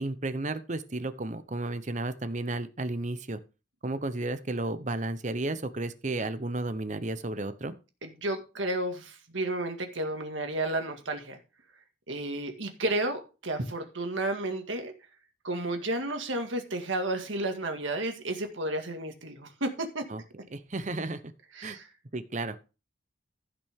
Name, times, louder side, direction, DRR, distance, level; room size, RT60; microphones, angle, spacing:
voice 1, 0.0-3.4 3.8-7.7 20.1-20.2 20.5-21.2 21.6-21.8 22.1-22.6, right 2 dB, 40° right, 0.8 m, -33 dB
voice 2, 8.0-11.4 12.1-14.9 15.4-20.0 21.5-21.9, right 2 dB, 80° right, 2.0 m, -32 dB
15.0 x 6.0 x 3.6 m
head